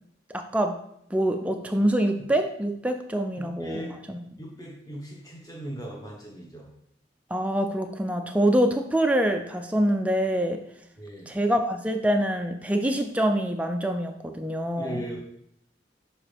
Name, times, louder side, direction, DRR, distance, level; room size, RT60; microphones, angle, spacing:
voice 1, 0.3-0.7 1.1-4.2 7.3-10.6 11.3-15.0, right 1 dB, 5° right, 5 dB, 0.4 m, -25 dB
voice 2, 3.4-3.9 4.4-6.7 11.0-11.3 14.8-15.2, equal, 20° left, -2 dB, 1.4 m, -38 dB
7.2 x 4.4 x 3.4 m, 0.75 s
head